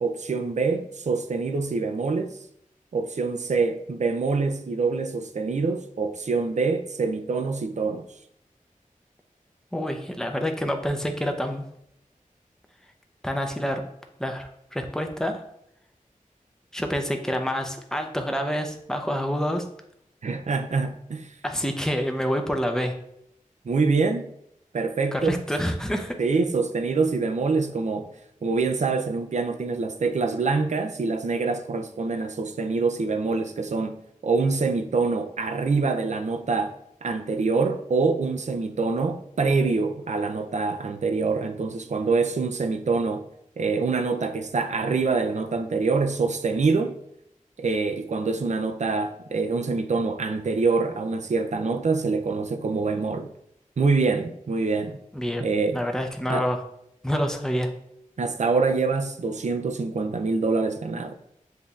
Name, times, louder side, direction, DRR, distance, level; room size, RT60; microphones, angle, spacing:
voice 1, 0.0-2.3 2.9-8.0 20.2-21.3 23.6-24.3 24.7-25.4 26.2-28.1 28.4-34.0 34.2-43.3 43.6-47.0 47.6-53.3 53.8-55.0 55.4-55.8 56.3-56.5 58.2-61.1, right 4 dB, 55° right, 0.4 m, -25 dB
voice 2, 9.7-11.7 13.2-13.8 14.2-15.4 16.7-19.7 21.4-22.9 25.1-26.2 55.1-55.4 55.7-56.6 57.0-57.7, equal, 5° left, 0.6 m, -27 dB
7.5 x 2.7 x 2.4 m
wide cardioid pair, 50°, 14 cm